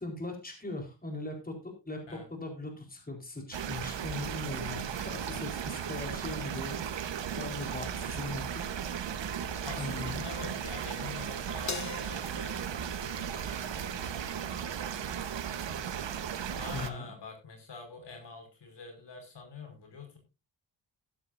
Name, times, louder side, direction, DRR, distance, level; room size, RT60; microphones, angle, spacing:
voice 1, 0.0-8.5 9.8-10.1 16.7-17.1, left 2 dB, 20° left, 3 dB, 4.4 m, -40 dB
sound 1, 3.5-16.9, right 8 dB, 85° right, 1.3 m, -36 dB
voice 2, 9.6-14.2 16.5-20.2, left 4 dB, 75° left, 5 dB, 5.5 m, -46 dB
Crash cymbal, 11.7-14.2, left 6 dB, 40° left, 1.2 m, -43 dB
14.5 x 12.5 x 2.7 m, 0.28 s
cardioid pair, 85°, 43 cm